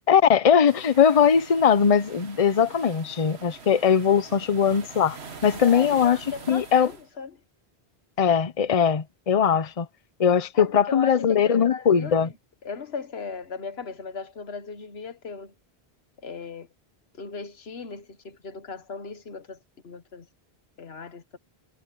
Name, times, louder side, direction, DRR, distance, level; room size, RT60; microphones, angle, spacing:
voice 1, 0.1-5.2 5.4-6.2 6.5-6.9 8.2-9.9 10.2-12.3, left 7 dB, 40° left, 0.8 m, -20 dB
sound 1, 0.7-7.1, right 5 dB, 85° right, 1.9 m, -44 dB
voice 2, 5.6-7.4 10.5-12.3 12.6-15.5 16.2-16.7 17.2-19.6 19.8-20.3 20.8-21.4, left 5 dB, 75° left, 1.6 m, -37 dB
omnidirectional pair, 1.1 m